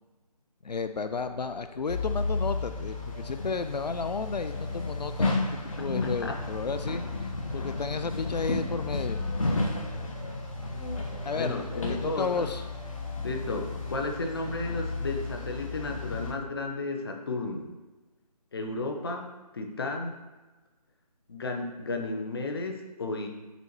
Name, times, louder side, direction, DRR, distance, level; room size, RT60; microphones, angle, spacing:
voice 1, 0.6-9.3 11.2-11.6 12.0-12.6, left 5 dB, 80° left, 9 dB, 0.5 m, -33 dB
sound 1, 1.1-13.9, left 1 dB, 15° left, 0.6 m, -50 dB
sound 2, 1.9-16.3, left 3 dB, 55° left, 1.2 m, -33 dB
voice 2, 5.8-6.4 11.3-12.5 13.1-17.7 18.5-20.2 21.3-23.3, left 2 dB, 35° left, 3 dB, 0.9 m, -33 dB
8.0 x 6.9 x 3.0 m, 1.2 s
figure-of-eight pair, 160°, 21 cm